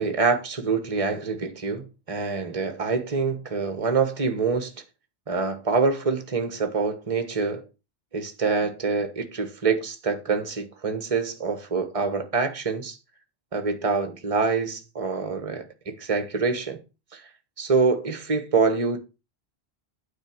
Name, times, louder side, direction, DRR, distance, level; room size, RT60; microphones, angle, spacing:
voice 1, 0.0-4.7 5.3-7.6 8.1-13.0 13.5-16.8 17.1-17.2 17.6-19.0, right 4 dB, 30° right, 1.3 m, -25 dB
9.2 x 3.9 x 7.1 m
omnidirectional pair, 1.1 m